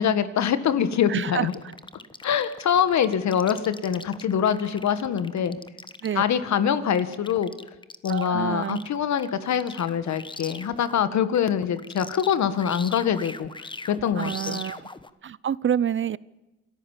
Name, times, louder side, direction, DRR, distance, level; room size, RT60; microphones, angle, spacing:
voice 1, 0.0-1.5 2.2-5.6 6.1-7.5 8.0-14.6, left 8 dB, 65° left, 12 dB, 1.8 m, -24 dB
voice 2, 1.1-1.5 6.0-6.2 8.1-8.8 14.2-14.9 15.2-16.2, right 9 dB, 40° right, 21 dB, 0.6 m, -27 dB
sound 1, 1.5-11.0 11.3-15.1, left 3 dB, 15° left, 1.2 m, -41 dB
27.5 x 14.0 x 7.4 m, 1.0 s
cardioid pair, 90°, 30 cm